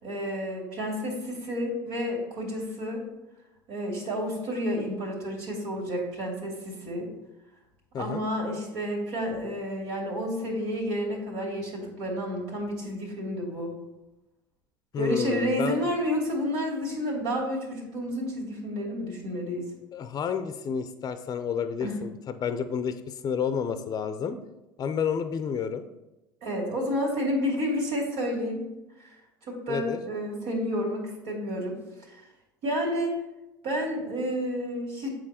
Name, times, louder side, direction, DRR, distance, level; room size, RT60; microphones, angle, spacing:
voice 1, 0.0-3.0 3.7-7.1 8.0-13.7 15.0-19.6 21.8-22.0 26.4-28.6 29.4-31.8 32.1-32.2 32.6-33.1 33.6-35.1, equal, 65° right, -2 dB, 2.7 m, -30 dB
voice 2, 7.9-8.3 14.9-15.8 19.9-24.4 24.8-25.9 29.7-30.0, left 7 dB, 35° left, 10 dB, 0.6 m, -30 dB
7.5 x 4.5 x 4.3 m, 0.98 s
hypercardioid pair, 85°, 11 cm